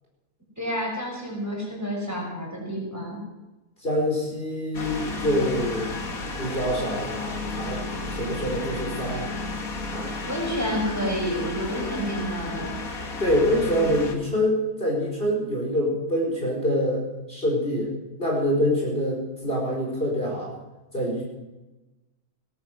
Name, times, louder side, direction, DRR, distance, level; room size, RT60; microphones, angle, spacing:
voice 1, 0.6-3.2 10.2-12.7, equal, 10° right, -3 dB, 6.0 m, -29 dB
voice 2, 3.8-6.0 6.4-7.8 8.1-9.3 9.9-10.2 13.2-17.9 18.2-20.5 20.9-21.2, equal, 40° left, -4 dB, 4.9 m, -25 dB
sound 1, 4.7-14.1, left 3 dB, 70° left, 2.2 m, -33 dB
18.0 x 12.5 x 6.1 m, 1.1 s
omnidirectional pair, 1.5 m